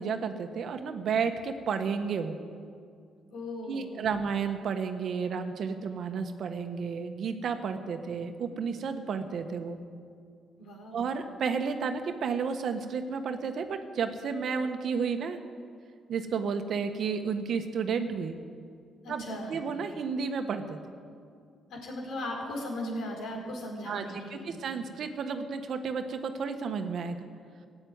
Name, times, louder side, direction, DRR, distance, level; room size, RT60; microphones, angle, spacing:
voice 1, 0.0-2.4 3.7-9.8 10.9-15.4 16.1-18.3 19.1-19.2 19.5-20.8 23.8-24.0 24.3-27.2, right 5 dB, 65° right, 7 dB, 1.3 m, -32 dB
voice 2, 3.3-4.1 10.6-11.1 19.0-19.6 21.7-24.6, left 1 dB, 75° left, -1 dB, 4.7 m, -37 dB
16.0 x 8.8 x 9.4 m, 2.3 s
cardioid pair, 90°, 0 cm